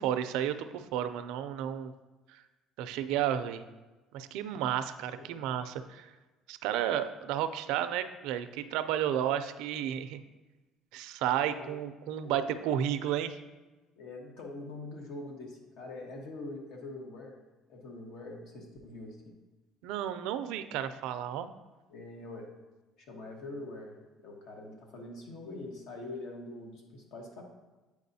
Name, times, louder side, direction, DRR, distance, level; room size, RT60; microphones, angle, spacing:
voice 1, 0.0-1.9 2.3-2.4 2.8-3.6 4.1-6.1 6.5-10.2 10.9-13.4 19.8-21.5, right 10 dB, 80° right, 11 dB, 0.4 m, -32 dB
voice 2, 5.1-5.4 11.4-11.8 12.2-12.3 14.0-17.4 17.7-19.2 21.9-22.5 23.0-23.9 24.2-27.4, left 2 dB, 70° left, 1 dB, 1.2 m, -44 dB
8.4 x 4.7 x 2.7 m, 1.2 s
cardioid pair, 125°, 0 cm